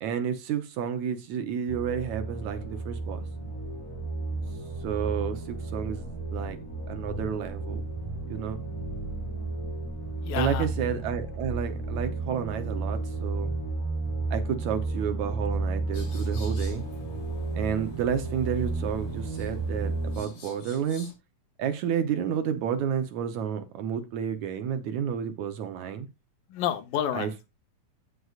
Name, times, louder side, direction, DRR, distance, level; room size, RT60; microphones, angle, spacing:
voice 1, 0.0-3.2 4.8-6.6 6.9-7.8 8.3-8.6 10.4-13.5 14.3-16.8 17.6-21.1 21.6-26.1 27.1-27.3, right 8 dB, 70° right, 1.9 m, -31 dB
sound 1, 1.7-20.2, right 3 dB, 10° left, 6.0 m, -32 dB
voice 2, 10.2-10.7 26.5-27.5, left 11 dB, 80° left, 2.6 m, -30 dB
sound 2, 15.9-21.1, left 4 dB, 55° left, 3.6 m, -50 dB
16.0 x 6.4 x 2.4 m
omnidirectional pair, 3.9 m